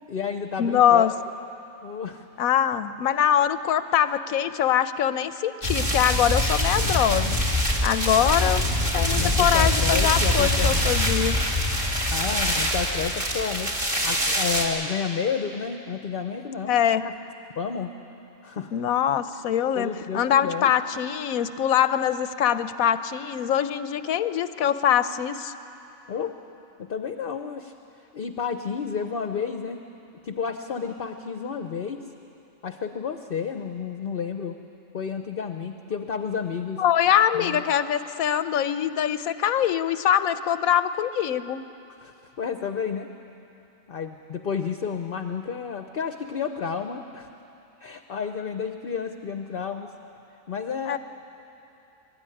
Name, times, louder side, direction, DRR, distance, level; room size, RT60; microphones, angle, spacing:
voice 1, 0.1-1.1 1.8-2.2 8.2-8.5 9.2-10.9 12.1-17.1 17.6-17.9 18.4-18.7 19.8-20.7 26.1-26.3 26.8-27.7 28.1-29.9 30.2-32.0 32.6-34.6 34.9-36.8 37.3-37.6 42.0-43.1 43.9-47.3 47.8-49.9 50.5-51.0, left 6 dB, 50° left, 7 dB, 0.9 m, -31 dB
voice 2, 0.6-1.1 2.4-7.4 7.8-11.4 16.7-17.0 18.7-25.5 36.8-41.6 50.9-51.0, left 9 dB, 90° left, 12 dB, 1.1 m, -23 dB
sound 1, 5.6-14.7, left 1 dB, 35° right, 2.6 m, -24 dB
24.0 x 13.0 x 9.9 m, 2.8 s
omnidirectional pair, 1.4 m